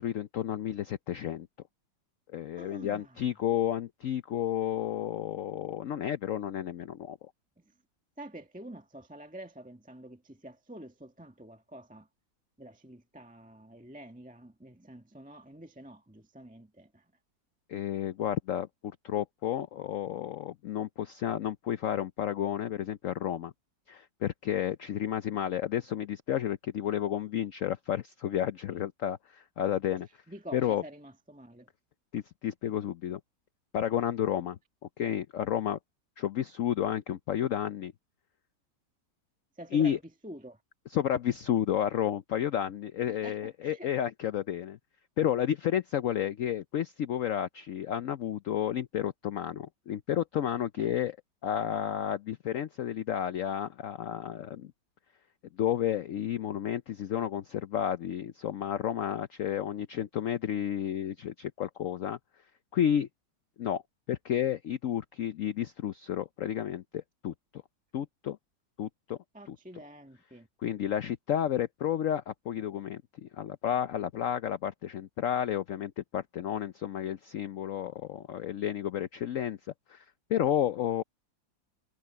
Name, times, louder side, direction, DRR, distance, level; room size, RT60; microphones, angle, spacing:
voice 1, 0.0-1.5 2.3-7.2 17.7-23.5 23.9-30.1 30.5-30.8 32.1-33.2 33.7-34.6 35.0-35.8 36.2-37.9 39.7-40.0 40.9-44.8 45.2-51.2 51.4-54.7 55.6-62.2 62.7-63.1 63.6-63.8 64.1-67.6 67.9-68.4 68.8-69.2 69.5-69.6 70.6-79.6 79.9-80.0 80.3-81.0, left 10 dB, 85° left, 0.7 m, -31 dB
voice 2, 2.6-3.3 8.2-12.1 12.6-17.0 30.3-31.7 39.6-40.6 43.1-43.9 50.8-50.9 69.3-70.5, right 1 dB, 5° right, 1.4 m, -47 dB
omnidirectional pair, 2.1 m